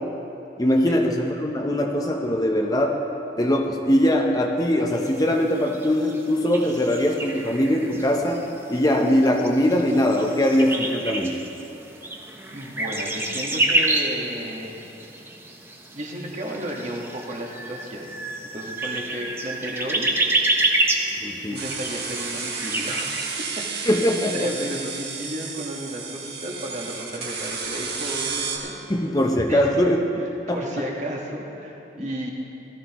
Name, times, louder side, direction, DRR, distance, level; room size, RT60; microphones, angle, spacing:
voice 1, 0.6-3.0 3.4-11.4 21.2-21.6 23.8-24.5 28.9-30.2 30.5-30.6, left 1 dB, 20° left, 1 dB, 0.7 m, -21 dB
sound 1, 4.9-23.4, right 2 dB, 15° right, 0.8 m, -29 dB
voice 2, 12.5-14.7 15.9-18.1 18.5-20.1 21.5-23.9 24.3-28.7 29.5-29.7 30.5-32.3, equal, 40° right, -2 dB, 1.6 m, -33 dB
sound 2, 21.5-28.6, right 5 dB, 60° right, 1.4 m, -32 dB
18.0 x 13.5 x 3.0 m, 3.0 s
head